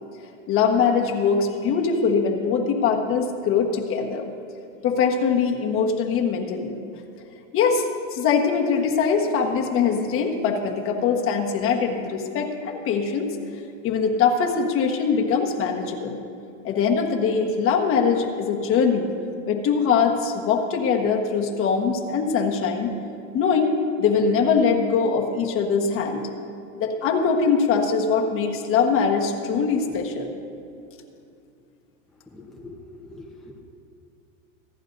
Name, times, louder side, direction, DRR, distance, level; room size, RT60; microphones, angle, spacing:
voice 1, 0.5-4.3 4.8-6.8 7.5-13.4 13.8-16.2 16.6-19.1 19.5-22.9 23.3-26.2 26.8-30.3, left 5 dB, 35° left, 2 dB, 1.3 m, -22 dB
voice 2, 32.3-32.8 33.1-33.6, left 2 dB, ahead, -3 dB, 1.0 m, -42 dB
26.5 x 11.0 x 2.6 m, 2.6 s
supercardioid pair, 140°, 39 cm